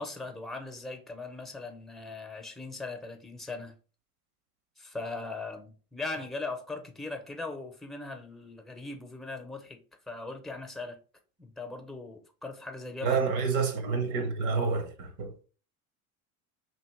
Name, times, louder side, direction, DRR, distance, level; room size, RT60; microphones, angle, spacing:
voice 1, 0.0-3.7 4.8-9.8 10.1-11.0 11.4-13.4, left 3 dB, ahead, 0.7 m, -39 dB
voice 2, 13.0-15.3, right 5 dB, 70° right, 1.0 m, -28 dB
2.9 x 2.8 x 4.4 m
hypercardioid pair, 95°, 46 cm